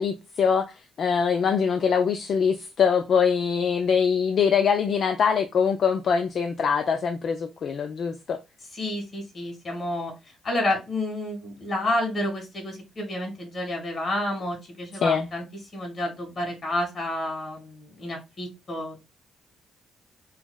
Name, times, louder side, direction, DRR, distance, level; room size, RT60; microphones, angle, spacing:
voice 1, 0.0-8.4 15.0-15.3, left 6 dB, 60° left, 0.4 m, -23 dB
voice 2, 8.7-10.1 10.4-15.4 15.7-19.0, left 1 dB, 35° left, 2.1 m, -30 dB
5.6 x 2.0 x 2.3 m
cardioid pair, 90°, 0 cm